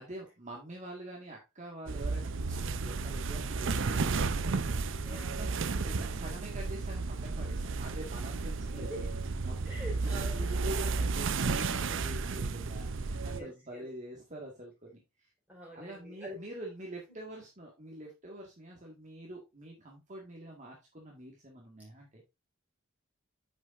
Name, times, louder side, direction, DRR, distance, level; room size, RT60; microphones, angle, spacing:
voice 1, 0.0-9.1 9.4-9.6 10.3-15.3 15.7-22.2, right 1 dB, 35° right, 1.8 m, -45 dB
sound 1, 1.9-13.4, right 4 dB, 65° right, 0.6 m, -33 dB
voice 2, 5.0-5.6 8.7-9.0 9.6-10.6 13.2-13.9 15.5-16.4 17.1-17.2, right 1 dB, 10° right, 4.7 m, -45 dB
9.3 x 6.4 x 2.6 m
head